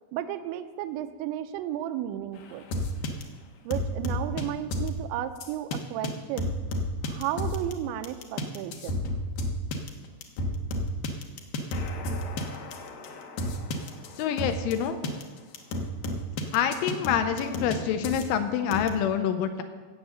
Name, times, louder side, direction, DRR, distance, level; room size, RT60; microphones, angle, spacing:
voice 1, 0.1-2.6 3.7-6.5 7.0-9.0, right 11 dB, 85° right, 8 dB, 2.7 m, -33 dB
sound 1, 2.7-3.2 3.7-4.4 4.7-4.9 5.4-5.8 6.0-6.1 6.4-7.7 8.0-14.7 15.0-15.2 15.5-17.8 18.0-18.2 18.7-18.9, left 1 dB, 70° left, 2.3 m, -31 dB
voice 2, 14.2-15.0 16.5-19.6, left 8 dB, 85° left, 7 dB, 3.1 m, -26 dB
17.0 x 8.0 x 6.9 m, 1.4 s
omnidirectional pair, 5.9 m